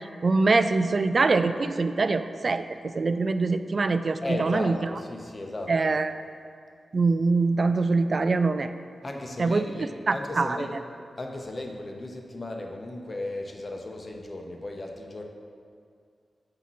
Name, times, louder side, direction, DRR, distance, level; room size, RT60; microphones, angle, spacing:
voice 1, 0.2-2.7 2.9-4.7 5.7-6.1 6.9-8.7 9.4-9.6 10.1-10.6, right 3 dB, 55° right, 11 dB, 0.3 m, -23 dB
voice 2, 4.2-5.9 9.0-10.8 11.2-15.2, left 2 dB, 40° left, 2 dB, 0.8 m, -35 dB
7.9 x 2.9 x 6.1 m, 2.2 s
cardioid pair, 60°, 0 cm